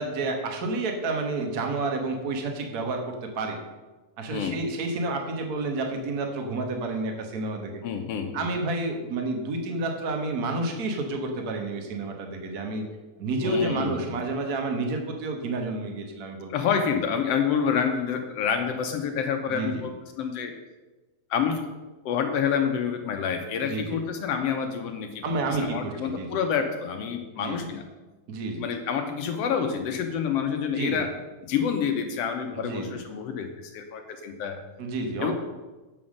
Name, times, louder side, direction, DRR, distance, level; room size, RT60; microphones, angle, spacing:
voice 1, 0.0-3.6 4.2-7.8 8.3-12.8 13.2-16.6 19.5-19.8 23.6-24.0 25.2-26.4 27.4-27.7 28.3-28.6 30.7-31.1 32.5-33.0 34.8-35.3, right 2 dB, 50° right, 3 dB, 1.1 m, -30 dB
voice 2, 7.8-8.4 13.4-14.1 16.5-20.5 21.3-21.7 22.0-25.2 25.6-27.8 28.6-31.1 31.4-34.6 35.2-35.3, left 7 dB, 70° left, 5 dB, 1.6 m, -28 dB
8.6 x 5.6 x 6.4 m, 1.2 s
omnidirectional pair, 3.4 m